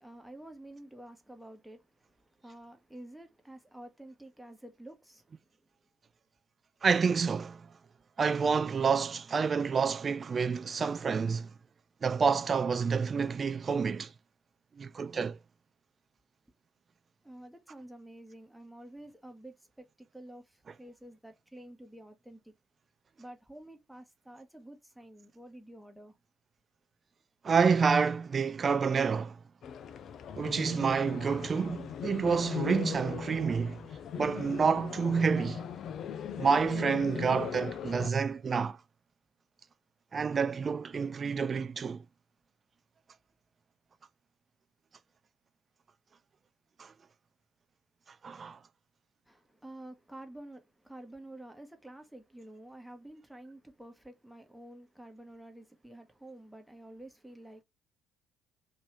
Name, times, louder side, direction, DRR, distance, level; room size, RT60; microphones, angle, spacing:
voice 1, 0.0-5.6 17.2-22.5 23.2-26.2 49.3-57.6, right 1 dB, 5° right, 1.0 m, -50 dB
voice 2, 6.8-7.7 8.2-11.5 12.0-14.1 14.8-15.4 27.4-29.4 30.4-33.8 34.2-35.6 36.4-38.8 40.1-42.0 46.8-46.9 48.2-48.6, right 5 dB, 40° right, 0.3 m, -28 dB
sound 1, 29.6-38.1, left 8 dB, 55° left, 0.3 m, -39 dB
3.0 x 2.7 x 3.1 m
hypercardioid pair, 50°, 0 cm